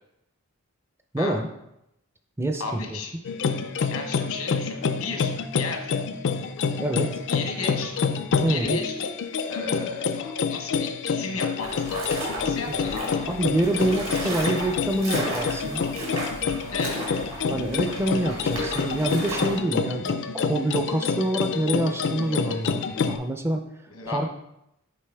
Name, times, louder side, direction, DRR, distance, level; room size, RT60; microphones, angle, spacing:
voice 1, 1.1-1.5 2.4-3.0 6.8-7.2 8.4-8.8 12.6-12.7 13.3-15.8 17.5-22.8 23.1-23.6 24.1-24.3, right 1 dB, 10° right, 6 dB, 0.4 m, -26 dB
voice 2, 2.6-3.1 3.9-5.9 7.3-8.0 8.5-9.1 9.5-13.5 16.7-17.1 23.9-24.3, left 4 dB, 90° left, 3 dB, 1.1 m, -34 dB
sound 1, 3.2-23.2, left 5 dB, 60° left, 0.4 m, -27 dB
sound 2, 11.6-19.6, right 1 dB, 65° right, 1.8 m, -34 dB
6.7 x 4.7 x 3.4 m, 0.83 s
head